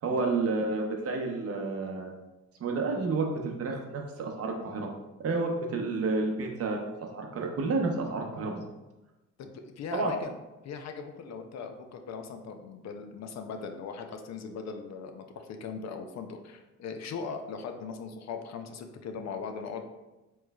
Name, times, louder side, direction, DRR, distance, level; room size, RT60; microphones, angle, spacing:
voice 1, 0.0-2.2 2.6-4.9 5.2-8.6 9.9-10.1, right 3 dB, 50° right, 2 dB, 0.7 m, -30 dB
voice 2, 9.4-10.4 10.6-19.8, left 5 dB, 65° left, 5 dB, 0.5 m, -39 dB
4.4 x 3.1 x 2.3 m, 1.0 s
cardioid pair, 90°, 30 cm